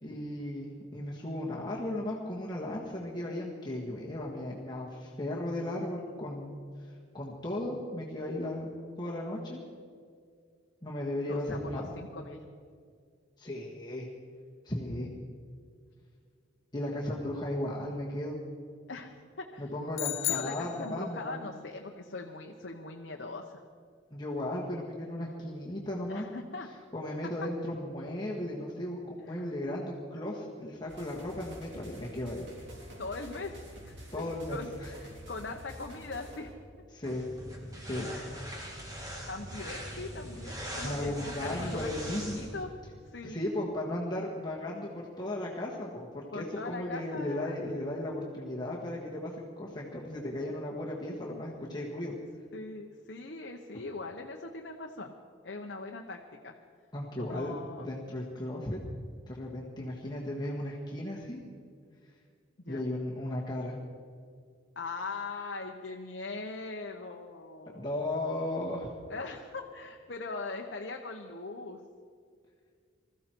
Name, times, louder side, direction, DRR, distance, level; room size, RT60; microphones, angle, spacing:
voice 1, 0.0-6.5 6.8-8.7 9.0-9.6 10.8-11.9 13.4-14.1 14.6-15.1 16.7-18.4 19.6-21.5 24.1-26.3 26.9-32.5 34.1-34.9 36.9-37.2 37.8-38.1 40.8-42.4 43.2-52.1 56.9-57.5 57.8-58.8 59.3-61.4 62.7-63.7 67.7-68.9, left 1 dB, 20° left, -4 dB, 1.7 m, -36 dB
voice 2, 11.3-12.4 18.9-19.1 19.4-19.7 20.2-23.6 26.1-26.7 29.3-29.5 33.0-33.5 33.8-34.2 34.5-36.5 38.1-38.3 39.3-42.7 43.1-43.4 46.3-47.6 52.5-55.1 55.4-56.5 57.2-57.9 62.6-62.8 64.8-67.9 69.1-71.8, left 3 dB, 60° left, 2 dB, 1.0 m, -41 dB
sound 1, 19.9-21.4, left 16 dB, 75° left, 0.6 m, -34 dB
sound 2, 30.9-36.5, equal, 60° right, 4.0 m, -48 dB
sound 3, 37.0-42.6, equal, 20° right, 2.3 m, -41 dB
21.0 x 14.5 x 4.6 m, 2.1 s
head